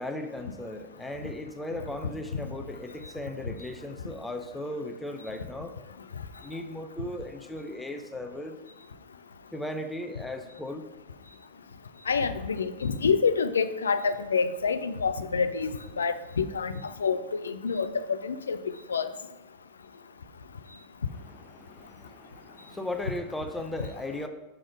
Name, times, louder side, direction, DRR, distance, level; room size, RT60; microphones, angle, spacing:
voice 1, 0.0-5.7 6.4-8.6 9.5-10.9 21.1-24.3, left 1 dB, 5° left, 5 dB, 0.6 m, -37 dB
voice 2, 12.1-15.7 16.0-16.7 17.0-18.6 18.9-19.1, left 5 dB, 70° left, 11 dB, 0.4 m, -27 dB
5.9 x 4.9 x 5.0 m, 1.0 s
figure-of-eight pair, 90°, 0 cm